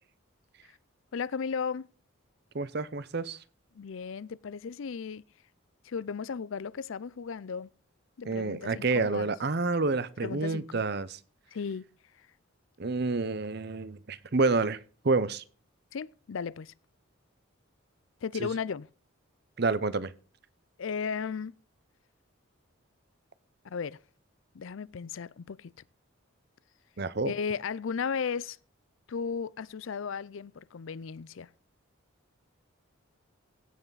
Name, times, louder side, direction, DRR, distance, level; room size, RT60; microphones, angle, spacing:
voice 1, 1.1-1.9 3.7-5.2 5.8-7.7 8.2-9.3 10.2-10.8 11.5-11.8 15.9-16.7 18.2-18.9 20.8-21.5 23.6-24.0 24.5-25.7 27.2-28.6 29.1-31.5, left 6 dB, 65° left, 0.4 m, -35 dB
voice 2, 2.5-3.4 8.2-11.2 12.8-14.8 15.0-15.4 18.4-18.5 19.6-20.1 27.0-27.3, right 3 dB, 50° right, 0.7 m, -28 dB
16.0 x 5.7 x 3.9 m
head